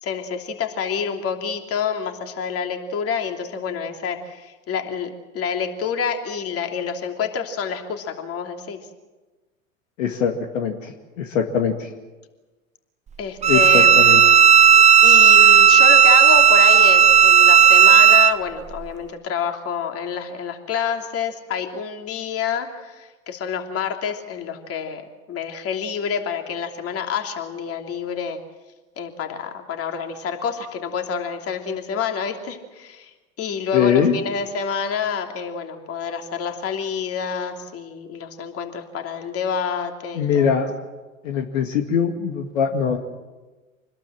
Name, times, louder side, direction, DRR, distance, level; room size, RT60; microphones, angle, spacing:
voice 1, 0.0-8.8 13.2-14.4 15.0-25.0 25.3-28.4 29.0-40.5, left 6 dB, 35° left, 4 dB, 3.1 m, -28 dB
voice 2, 10.0-11.9 13.5-14.4 33.7-34.1 40.1-40.7 41.2-43.0, left 7 dB, 65° left, 4 dB, 2.3 m, -22 dB
Bowed string instrument, 13.4-18.3, right 8 dB, 15° right, 0.7 m, -12 dB
26.0 x 20.5 x 7.7 m, 1.2 s
hypercardioid pair, 95°, 42 cm